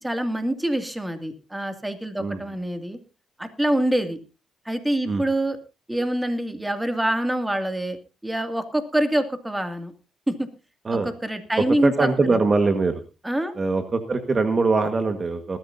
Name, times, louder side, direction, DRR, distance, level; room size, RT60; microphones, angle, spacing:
voice 1, 0.0-3.0 3.4-4.2 4.7-5.6 5.9-9.9 10.3-10.5 11.0-12.1 13.2-13.5, right 1 dB, 10° right, 7 dB, 2.4 m, -25 dB
voice 2, 11.8-13.0 13.5-15.6, right 3 dB, 35° right, 7 dB, 1.5 m, -22 dB
20.0 x 13.5 x 2.7 m, 0.30 s
cardioid pair, 90°, 0 cm